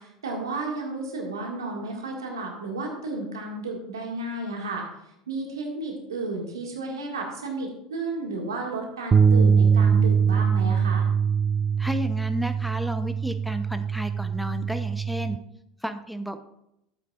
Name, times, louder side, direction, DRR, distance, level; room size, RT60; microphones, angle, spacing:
voice 1, 0.0-4.9 5.3-11.1, right 2 dB, 80° right, 1 dB, 1.9 m, -32 dB
sound 1, 9.1-15.4, right 6 dB, 25° right, 0.3 m, -22 dB
voice 2, 11.8-15.4 15.8-16.4, equal, ahead, 9 dB, 0.7 m, -32 dB
12.0 x 8.2 x 2.4 m, 0.83 s
hypercardioid pair, 75°, 2 cm